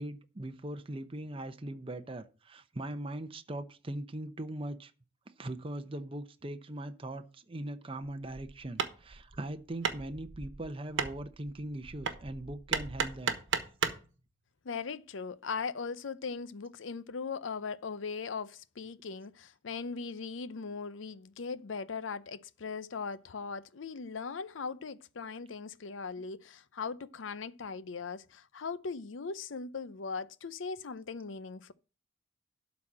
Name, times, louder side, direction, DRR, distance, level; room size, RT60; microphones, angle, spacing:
voice 1, 0.0-4.9 5.4-13.4, right 1 dB, 30° right, 0.7 m, -40 dB
Hammer, 8.0-14.1, right 5 dB, 70° right, 1.2 m, -36 dB
voice 2, 14.6-31.7, left 5 dB, 80° left, 0.6 m, -39 dB
12.0 x 4.2 x 7.5 m
head